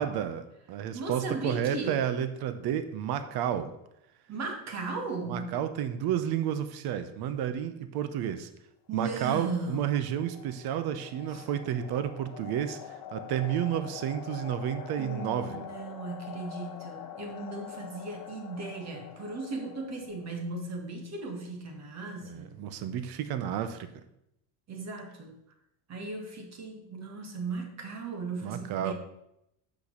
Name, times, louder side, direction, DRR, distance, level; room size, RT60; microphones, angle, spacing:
voice 1, 0.0-3.7 5.3-8.5 8.9-15.6 22.2-23.9 28.4-28.9, right 10 dB, 50° right, 10 dB, 0.9 m, -31 dB
voice 2, 0.9-2.0 4.3-5.5 8.9-10.0 11.3-11.5 15.0-22.5 24.7-25.4 25.9-28.9, right 3 dB, 35° right, 3 dB, 1.8 m, -37 dB
sound 1, 9.6-20.5, left 9 dB, 45° left, 0.9 m, -45 dB
6.4 x 5.9 x 6.5 m, 0.81 s
cardioid pair, 135°, 49 cm